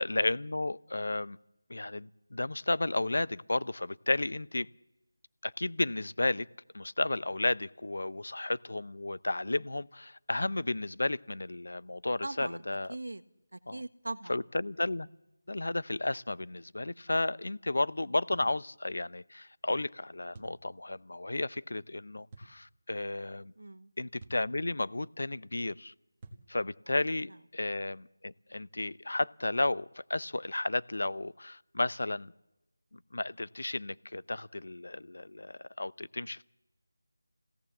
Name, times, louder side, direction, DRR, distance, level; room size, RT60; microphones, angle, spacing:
voice 1, 0.0-1.4 1.7-4.7 5.4-6.5 6.7-12.9 13.7-13.8 14.3-15.1 15.5-23.5 24.0-25.9 26.5-32.3 32.9-36.5, left 2 dB, 65° left, 0.8 m, -33 dB
voice 2, 12.2-12.6 12.9-13.2 13.5-14.4 23.6-23.9, right 2 dB, 80° right, 1.5 m, -40 dB
sound 1, 18.3-18.6 20.3-20.6 22.3-22.5 24.2-24.5 26.2-26.5, right 2 dB, 15° right, 1.6 m, -49 dB
29.0 x 17.0 x 7.4 m
figure-of-eight pair, 180°, 0 cm